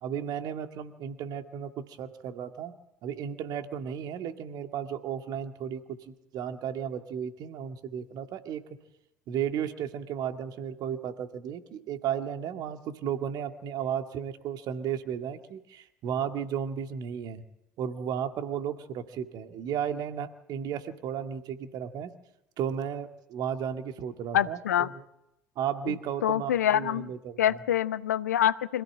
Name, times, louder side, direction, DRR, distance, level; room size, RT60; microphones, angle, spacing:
voice 1, 0.0-2.8 3.0-8.6 9.3-17.4 17.8-22.2 22.6-25.0 25.6-27.6, right 8 dB, 45° right, 7 dB, 2.1 m, -34 dB
voice 2, 24.3-24.9 25.9-26.0 26.2-27.1 27.4-28.8, left 11 dB, 70° left, 16 dB, 0.7 m, -26 dB
25.5 x 16.0 x 8.9 m, 0.85 s
figure-of-eight pair, 65°, 9 cm